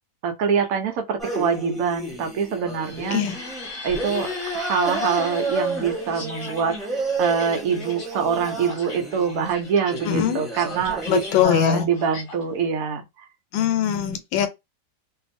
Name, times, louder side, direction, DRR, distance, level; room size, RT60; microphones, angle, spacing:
voice 1, 0.2-3.2 3.8-13.0, right 6 dB, 65° right, 0.9 m, -25 dB
sound 1, 1.2-11.4, right 2 dB, ahead, 0.5 m, -31 dB
sound 2, 2.7-12.4, left 3 dB, 35° left, 0.9 m, -40 dB
voice 2, 10.0-10.4 11.1-11.9 13.5-14.5, left 9 dB, 90° left, 1.3 m, -21 dB
2.7 x 2.6 x 2.5 m
omnidirectional pair, 2.0 m